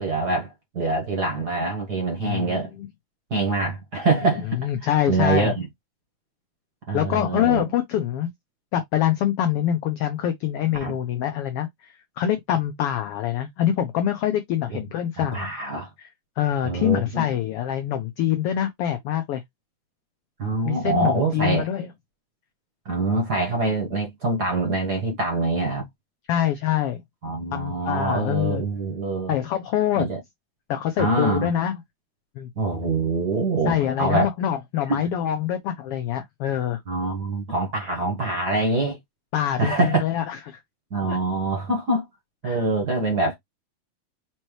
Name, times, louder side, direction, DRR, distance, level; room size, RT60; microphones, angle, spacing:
voice 1, 0.0-2.7 3.3-4.4 5.1-5.7 6.9-7.6 10.8-11.0 14.7-14.8 15.2-15.9 16.6-17.3 20.4-21.6 22.8-25.9 27.2-29.3 29.9-30.2 31.0-31.5 32.6-34.3 34.9-35.0 36.9-39.0 39.6-40.0 40.9-42.0 42.4-43.4, right 3 dB, 50° right, 1.3 m, -24 dB
voice 2, 2.3-2.9 4.3-5.6 6.9-8.3 8.7-15.5 16.0-16.1 16.4-19.4 20.7-21.9 26.3-27.0 27.5-28.6 29.3-30.0 30.7-31.8 32.4-32.5 33.6-36.8 39.3-40.6 41.1-41.2 42.4-42.6, left 11 dB, 80° left, 1.3 m, -25 dB
5.3 x 3.0 x 3.1 m
omnidirectional pair, 3.3 m